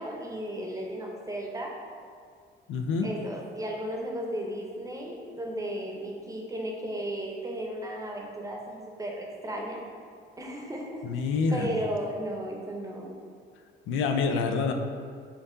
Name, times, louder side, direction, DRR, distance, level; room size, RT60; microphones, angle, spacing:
voice 1, 0.0-1.7 3.0-9.8 10.4-13.1, right 1 dB, 15° right, -1 dB, 0.7 m, -35 dB
voice 2, 2.7-3.1 11.0-11.7 13.9-14.7, left 4 dB, 80° left, 5 dB, 0.4 m, -27 dB
4.4 x 2.7 x 3.7 m, 2.1 s
cardioid pair, 90°, 20 cm